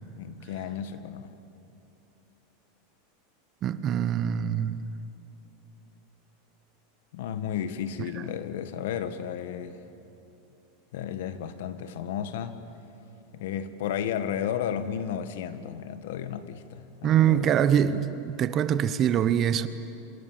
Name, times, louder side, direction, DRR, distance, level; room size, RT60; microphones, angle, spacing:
voice 1, 0.2-1.3 7.1-9.8 10.9-12.6 13.3-17.6, left 9 dB, 75° left, 1.7 m, -33 dB
voice 2, 3.6-4.9 17.0-19.7, right 9 dB, 30° right, 1.0 m, -24 dB
28.5 x 26.5 x 7.5 m
supercardioid pair, 160°, 0 cm